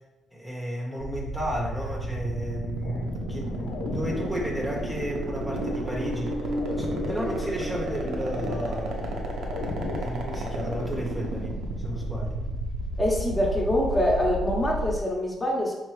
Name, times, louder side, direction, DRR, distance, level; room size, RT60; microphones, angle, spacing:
voice 1, 0.3-9.2 10.0-12.4, equal, 5° right, -2 dB, 1.0 m, -33 dB
sound 1, 1.0-15.0, right 2 dB, 70° right, 0.7 m, -32 dB
sound 2, 2.8-11.0, left 3 dB, 90° left, 0.4 m, -37 dB
sound 3, 4.9-11.1 11.5-11.6, right 1 dB, 40° right, 0.5 m, -37 dB
voice 2, 13.0-15.7, left 1 dB, 20° left, -3 dB, 1.1 m, -25 dB
4.5 x 3.6 x 3.3 m, 1.1 s
cardioid pair, 90°, 0 cm